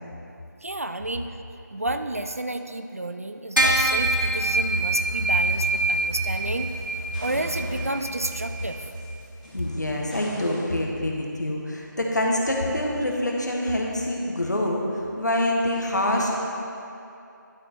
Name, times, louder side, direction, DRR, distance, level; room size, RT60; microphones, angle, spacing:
voice 1, 0.6-1.4 1.7-6.7 7.2-8.9, right 2 dB, 45° right, 8 dB, 0.4 m, -31 dB
sound 1, 3.6-9.2, right 2 dB, 80° right, 1.4 m, -25 dB
sound 2, 5.3-6.7 7.1-10.7, left 1 dB, 20° left, 1.7 m, -43 dB
voice 2, 9.5-16.3, left 1 dB, 60° left, -1 dB, 1.3 m, -26 dB
11.5 x 4.4 x 4.3 m, 2.7 s
figure-of-eight pair, 165°, 11 cm